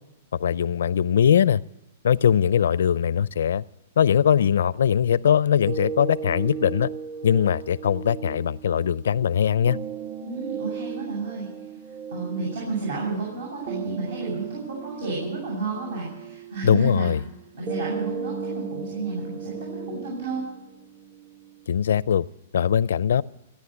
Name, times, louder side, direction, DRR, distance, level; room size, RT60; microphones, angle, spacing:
voice 1, 0.4-1.6 2.0-3.6 4.0-6.9 7.2-9.8 16.6-17.2 21.7-22.2 22.5-23.2, left 8 dB, 85° left, 20 dB, 0.5 m, -21 dB
sound 1, 5.7-21.7, right 6 dB, 25° right, 0.9 m, -36 dB
voice 2, 10.2-11.5 11.9-17.1 17.5-20.5, right 3 dB, 75° right, -3 dB, 7.9 m, -31 dB
17.0 x 10.5 x 8.1 m, 0.94 s
hypercardioid pair, 155°, 0 cm